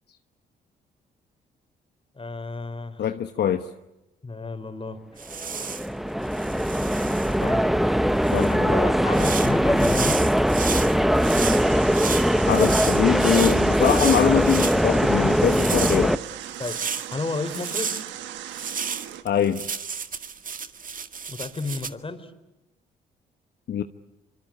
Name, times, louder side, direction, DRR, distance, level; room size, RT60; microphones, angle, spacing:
voice 1, 2.2-3.0 4.2-5.0 7.4-7.6 8.5-10.2 16.6-16.8 17.1-17.9 21.3-22.3, left 3 dB, 30° left, 9 dB, 4.4 m, -31 dB
voice 2, 3.0-3.7 8.3-8.7 12.5-16.1 19.2-19.7 23.7-23.8, left 9 dB, 65° left, 8 dB, 1.2 m, -23 dB
sound 1, 5.2-5.9 6.3-7.4 8.2-8.5 9.1-14.8 15.3-17.1 17.5-18.1 18.5-21.9, right 6 dB, 45° right, 2.0 m, -32 dB
sound 2, 5.3-16.2, equal, ahead, 1.1 m, -21 dB
sound 3, 11.2-19.2, right 12 dB, 80° right, 1.5 m, -38 dB
25.5 x 24.5 x 8.9 m, 0.98 s
supercardioid pair, 55°, 18 cm